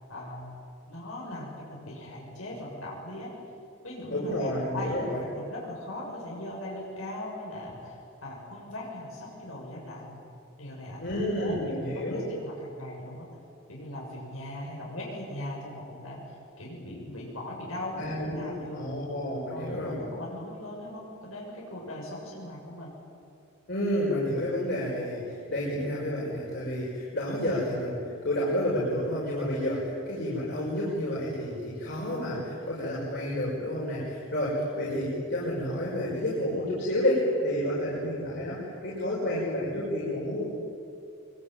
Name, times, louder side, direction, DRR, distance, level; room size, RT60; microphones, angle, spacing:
voice 1, 0.1-0.4 0.9-3.3 3.8-10.1 10.6-13.3 13.7-18.8 19.5-23.0, left 1 dB, 85° left, -3 dB, 6.9 m, -39 dB
voice 2, 4.1-5.2 11.0-12.3 18.0-20.1 23.7-40.4, left 1 dB, 55° left, -6 dB, 6.0 m, -30 dB
24.5 x 24.0 x 9.5 m, 2.5 s
head